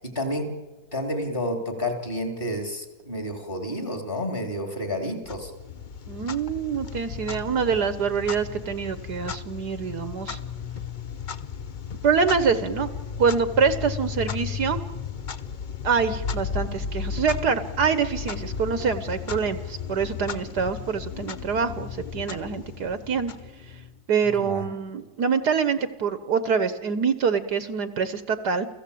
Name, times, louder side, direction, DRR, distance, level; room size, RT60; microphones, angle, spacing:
voice 1, 0.0-0.5 0.9-5.5 24.2-24.6, left 1 dB, 25° left, 6 dB, 3.4 m, -30 dB
Clock, 5.2-24.0, left 6 dB, 55° left, 0.5 m, -35 dB
voice 2, 6.1-10.4 12.0-12.9 13.2-14.8 15.8-23.3 24.1-28.7, right 6 dB, 60° right, 12 dB, 1.6 m, -25 dB
29.0 x 16.0 x 8.5 m, 1.2 s
omnidirectional pair, 2.0 m